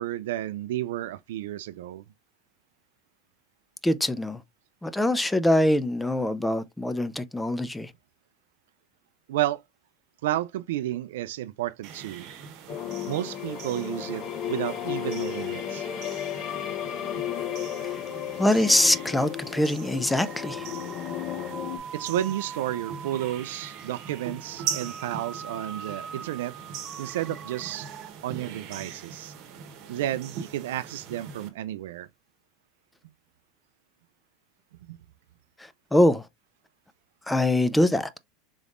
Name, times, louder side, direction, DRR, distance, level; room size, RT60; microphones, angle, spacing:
voice 1, 0.0-2.0 9.3-9.6 10.2-12.3 13.1-15.9 21.9-26.5 27.0-27.9 28.2-29.3 29.9-32.1 34.9-35.0, right 13 dB, 80° right, 0.3 m, -31 dB
voice 2, 3.8-4.4 4.8-7.9 17.9-18.0 18.4-20.6 35.9-36.2 37.3-38.2, left 1 dB, 10° left, 0.4 m, -23 dB
sound 1, 11.8-31.5, right 7 dB, 60° right, 1.0 m, -41 dB
sound 2, 12.7-21.8, left 10 dB, 50° left, 0.6 m, -34 dB
sound 3, 20.1-28.1, right 6 dB, 30° right, 0.7 m, -42 dB
3.9 x 3.4 x 2.4 m
supercardioid pair, 105°, 0 cm